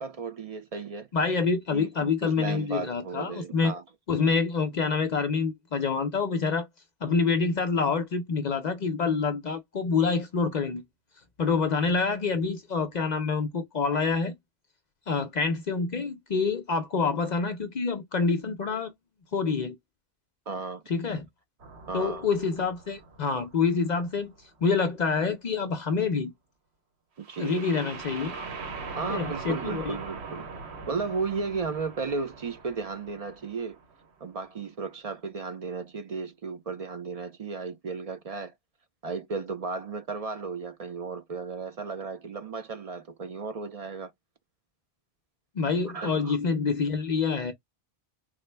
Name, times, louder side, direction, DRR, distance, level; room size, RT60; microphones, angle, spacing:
voice 1, 0.0-1.1 1.7-1.9 2.2-3.8 20.5-20.8 21.9-22.3 27.2-27.6 29.0-30.5 30.9-33.8 34.2-38.5 39.0-44.1 45.9-46.4, right 4 dB, 55° right, 0.4 m, -34 dB
voice 2, 1.1-3.7 4.1-6.7 7.0-10.8 11.4-14.3 15.1-18.9 19.3-19.8 20.9-21.3 21.9-24.3 24.6-26.3 27.4-28.3 29.1-30.0 45.6-47.5, left 4 dB, 55° left, 0.5 m, -27 dB
sound 1, 21.6-24.4 27.2-34.1, right 4 dB, 80° right, 1.2 m, -41 dB
3.7 x 2.0 x 3.2 m
omnidirectional pair, 1.1 m